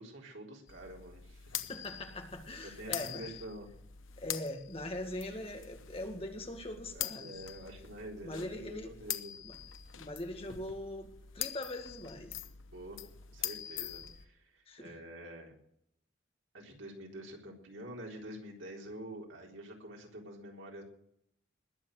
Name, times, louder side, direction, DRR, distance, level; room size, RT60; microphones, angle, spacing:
voice 1, 0.0-1.6 2.8-3.7 6.9-9.5 12.7-13.0 13.3-15.5 16.5-20.8, right 1 dB, 80° right, 0 dB, 4.0 m, -47 dB
sound 1, 0.7-14.2, left 11 dB, 90° left, 1.0 m, -44 dB
voice 2, 1.7-3.2 4.2-7.3 8.2-8.9 9.4-9.5 9.9-12.4 14.7-14.9, left 1 dB, 30° left, 5 dB, 2.0 m, -41 dB
20.5 x 7.4 x 7.8 m, 0.73 s
head